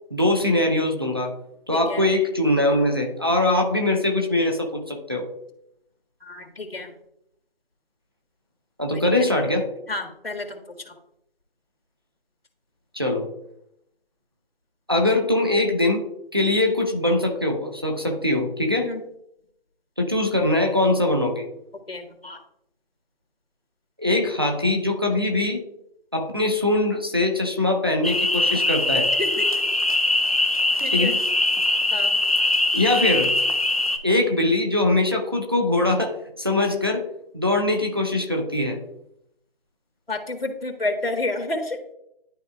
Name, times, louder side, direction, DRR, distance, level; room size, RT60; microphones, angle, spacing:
voice 1, 0.1-1.3 1.7-5.3 8.8-9.7 12.9-13.3 14.9-16.1 16.3-18.9 20.0-21.5 24.0-25.6 26.1-29.1 30.9-31.2 32.7-33.3 34.0-37.0 37.3-38.8, left 2 dB, 25° right, 1 dB, 0.6 m, -22 dB
voice 2, 1.7-2.0 6.2-6.9 8.9-9.0 9.9-10.9 18.8-19.0 21.9-22.4 29.2-29.5 30.8-31.2 31.9-32.1 40.1-41.8, left 2 dB, 75° left, 5 dB, 1.6 m, -30 dB
sound 1, 28.0-34.0, left 2 dB, 40° left, 0.5 m, -22 dB
11.5 x 4.1 x 2.3 m, 0.77 s
figure-of-eight pair, 165°, 30 cm